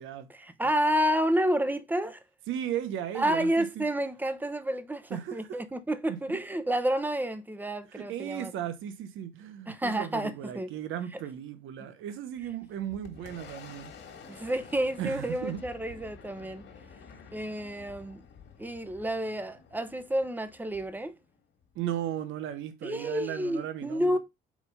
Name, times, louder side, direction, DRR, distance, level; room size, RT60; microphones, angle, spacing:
voice 1, 0.3-2.2 3.1-8.5 9.7-10.7 14.3-16.6 17.3-18.2 18.6-21.2 22.8-24.2, right 1 dB, 10° right, 0.8 m, -30 dB
voice 2, 2.5-3.9 5.1-5.6 6.1-6.2 7.9-13.9 15.0-15.6 21.7-24.2, right 10 dB, 85° right, 0.8 m, -36 dB
Boom, 12.4-21.8, left 6 dB, 65° left, 1.9 m, -50 dB
4.8 x 3.9 x 5.4 m
cardioid pair, 90°, 20 cm